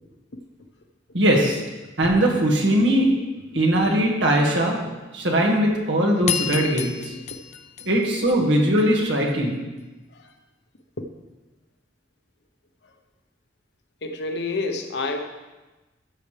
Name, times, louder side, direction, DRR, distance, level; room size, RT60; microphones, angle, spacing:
voice 1, 1.1-1.6 2.0-3.1 3.5-4.8 5.1-7.1 7.8-9.6, right 1 dB, 85° right, -1 dB, 1.9 m, -20 dB
sound 1, 6.3-8.8, left 9 dB, 40° left, 0.5 m, -30 dB
voice 2, 14.0-15.2, left 3 dB, 65° left, 6 dB, 0.9 m, -27 dB
13.0 x 7.1 x 3.4 m, 1.1 s
head